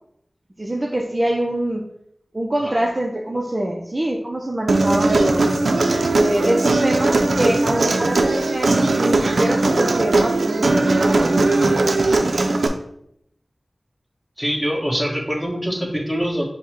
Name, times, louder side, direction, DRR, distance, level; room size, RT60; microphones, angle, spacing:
voice 1, 0.6-1.8 2.3-5.6 6.2-11.6, right 1 dB, 35° right, 0 dB, 0.5 m, -24 dB
Human voice, 4.7-12.7, right 2 dB, 85° right, 0.4 m, -19 dB
voice 2, 14.4-16.4, equal, ahead, -2 dB, 1.4 m, -24 dB
5.4 x 2.1 x 4.6 m, 0.72 s
wide cardioid pair, 45°, 0 cm